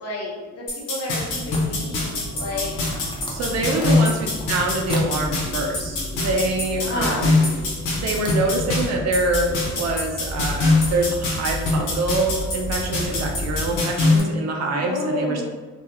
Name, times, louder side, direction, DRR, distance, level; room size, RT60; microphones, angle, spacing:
voice 1, 0.0-2.8 3.8-4.0 6.8-7.3 14.7-15.4, left 2 dB, 55° left, -4 dB, 0.9 m, -30 dB
sound 1, 0.7-14.2, left 3 dB, 80° left, 0.8 m, -24 dB
sound 2, 1.2-13.8, left 1 dB, 20° right, 1.2 m, -33 dB
sound 3, 1.4-1.9 2.4-5.2 5.5-5.6 5.9-7.4 8.0-8.9, left 1 dB, 15° left, 0.6 m, -41 dB
voice 2, 3.3-7.6 7.9-15.4, right 2 dB, 60° right, 1 dB, 0.5 m, -25 dB
2.3 x 2.3 x 2.8 m, 1.3 s
cardioid pair, 90°, 30 cm